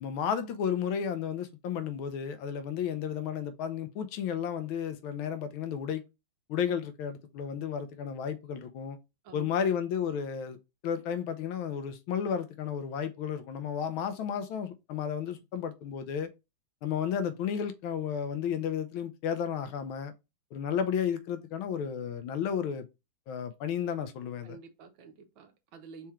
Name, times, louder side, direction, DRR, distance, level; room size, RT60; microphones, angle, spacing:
voice 1, 0.0-6.0 6.5-9.0 9.3-10.6 10.8-16.3 16.8-20.1 20.5-22.9 23.3-24.6, left 8 dB, 80° left, 1.4 m, -33 dB
voice 2, 9.2-9.7 24.4-26.1, right 5 dB, 75° right, 1.6 m, -50 dB
4.4 x 3.5 x 3.1 m
omnidirectional pair, 2.2 m